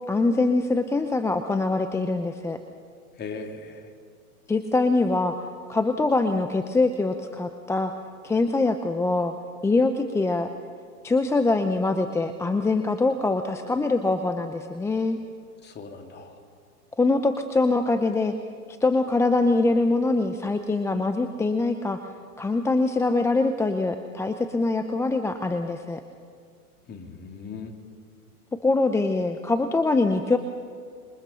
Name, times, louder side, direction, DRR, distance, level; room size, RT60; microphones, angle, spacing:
voice 1, 0.1-2.6 4.5-5.4 5.7-7.9 8.2-9.3 9.6-10.5 11.0-15.2 17.0-18.3 18.8-22.0 22.4-26.0 28.6-30.4, left 3 dB, 5° left, 8 dB, 0.6 m, -23 dB
voice 2, 3.2-3.9 15.6-16.3 26.9-27.7, left 4 dB, 20° left, 4 dB, 2.9 m, -38 dB
26.5 x 23.0 x 5.7 m, 2.2 s
hypercardioid pair, 115°, 45 cm